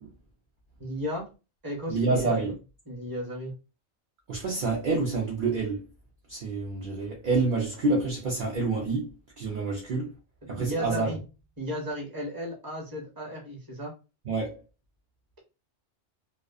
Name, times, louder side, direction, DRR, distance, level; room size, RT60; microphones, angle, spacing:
voice 1, 0.8-1.3 1.6-2.5 2.9-3.5 10.5-11.2 11.6-13.9, equal, 20° right, 0.9 m, -34 dB
voice 2, 1.9-2.5 4.3-5.8 6.3-10.1 10.5-11.1 14.3-14.6, right 3 dB, 55° right, 0.6 m, -28 dB
2.3 x 2.3 x 2.3 m
omnidirectional pair, 1.2 m